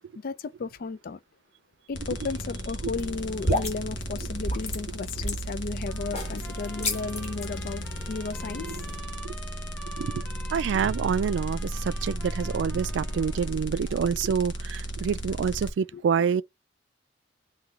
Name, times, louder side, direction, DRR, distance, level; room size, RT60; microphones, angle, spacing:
voice 1, 0.2-1.2 1.9-8.8 15.9-16.0, left 4 dB, 55° left, 0.4 m, -34 dB
sound 1, 1.9-15.7, equal, 90° left, 1.0 m, -34 dB
sound 2, 3.0-9.0, left 1 dB, 35° left, 1.8 m, -33 dB
sound 3, 5.9-13.6, right 1 dB, 5° left, 1.3 m, -47 dB
voice 2, 10.5-16.4, right 7 dB, 80° right, 0.3 m, -27 dB
3.7 x 2.7 x 3.4 m
head